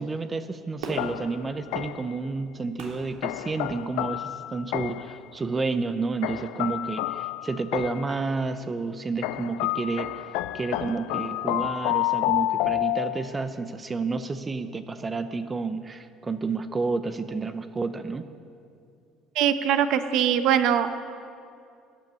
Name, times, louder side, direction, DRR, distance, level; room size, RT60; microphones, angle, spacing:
voice 1, 0.0-10.1 10.5-18.3, right 4 dB, 20° right, 10 dB, 0.6 m, -30 dB
Fireworks, 0.8-4.1 4.7-4.8, right 3 dB, 80° right, 3.2 m, -42 dB
sound 1, 1.0-2.2 3.2-5.2 6.2-8.2 9.2-13.5, left 16 dB, 80° left, 0.5 m, -29 dB
voice 2, 19.4-20.9, right 9 dB, 60° right, 10 dB, 1.0 m, -22 dB
14.0 x 10.5 x 9.6 m, 2.5 s
cardioid pair, 140°, 0 cm